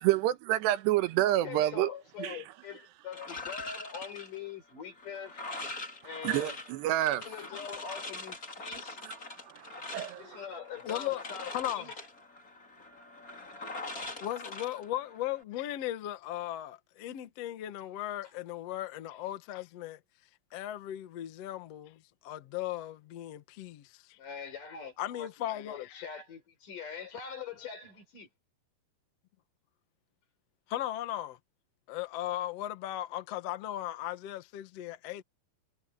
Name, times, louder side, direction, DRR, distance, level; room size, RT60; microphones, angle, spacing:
voice 1, 0.0-1.9 2.2-2.4 6.2-7.3 9.0-10.4, right 14 dB, 80° right, 3.0 m, -29 dB
voice 2, 1.2-5.5 6.0-6.6 7.1-9.0 10.2-11.9 24.2-28.3, left 7 dB, 50° left, 5.6 m, -43 dB
sound 1, 3.1-15.4, left 2 dB, 20° left, 3.1 m, -43 dB
voice 3, 10.8-11.9 14.2-20.0 20.5-24.2 25.0-26.0 30.7-31.4 31.9-35.2, left 13 dB, 80° left, 1.4 m, -37 dB
omnidirectional pair, 5.0 m